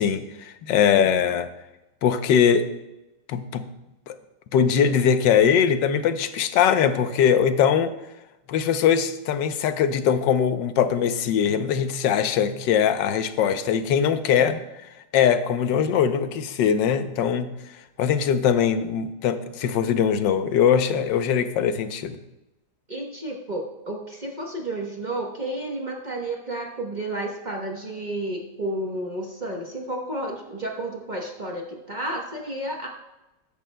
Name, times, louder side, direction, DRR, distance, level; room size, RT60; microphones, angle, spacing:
voice 1, 0.0-1.5 2.0-2.7 3.3-3.6 4.1-4.2 4.5-7.9 8.5-14.6 15.1-17.5 18.0-22.2, left 8 dB, 85° left, 10 dB, 1.4 m, -21 dB
voice 2, 22.9-32.9, right 1 dB, 30° right, 0 dB, 1.0 m, -31 dB
14.0 x 10.5 x 2.2 m, 0.95 s
omnidirectional pair, 1.9 m